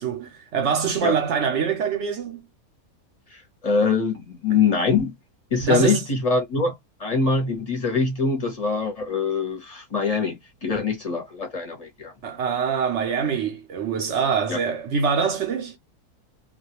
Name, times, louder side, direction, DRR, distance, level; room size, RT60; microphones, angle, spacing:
voice 1, 0.0-2.4 4.5-4.6 5.6-6.0 12.2-15.8, right 6 dB, 65° right, 0.7 m, -24 dB
voice 2, 3.3-5.1 5.5-12.1 14.5-14.6, left 4 dB, 35° left, 0.7 m, -24 dB
2.3 x 2.2 x 2.9 m
omnidirectional pair, 1.6 m